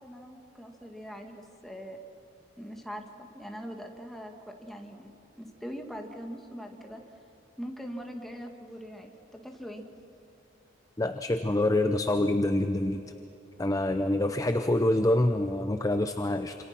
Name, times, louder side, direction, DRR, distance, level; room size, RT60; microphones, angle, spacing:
voice 1, 0.0-2.0 2.6-5.1 5.4-7.0 7.6-9.8, equal, ahead, 2 dB, 2.0 m, -42 dB
voice 2, 11.0-13.0 13.6-16.6, left 1 dB, 20° left, 8 dB, 0.7 m, -26 dB
28.0 x 27.0 x 6.1 m, 3.0 s
head